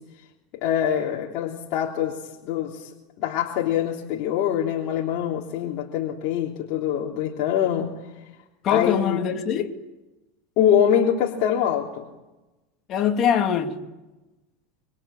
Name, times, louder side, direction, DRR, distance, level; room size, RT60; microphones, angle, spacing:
voice 1, 0.6-2.2 2.4-2.9 3.2-7.9 8.7-9.2 10.6-12.0, left 9 dB, 55° left, 3.3 m, -24 dB
voice 2, 8.6-9.8 12.9-13.8, left 8 dB, 40° left, 3.0 m, -23 dB
26.0 x 25.0 x 9.0 m
supercardioid pair, 135°, 0 cm